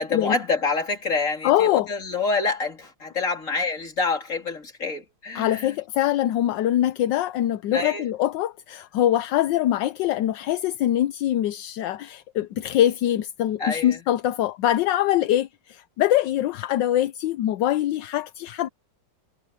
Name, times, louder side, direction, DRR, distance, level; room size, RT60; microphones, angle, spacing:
voice 1, 0.0-5.7 7.7-8.1 13.6-14.0, left 4 dB, 40° left, 3.6 m, -27 dB
voice 2, 1.4-1.9 5.3-18.7, left 12 dB, 70° left, 1.2 m, -23 dB
omnidirectional pair, 2.2 m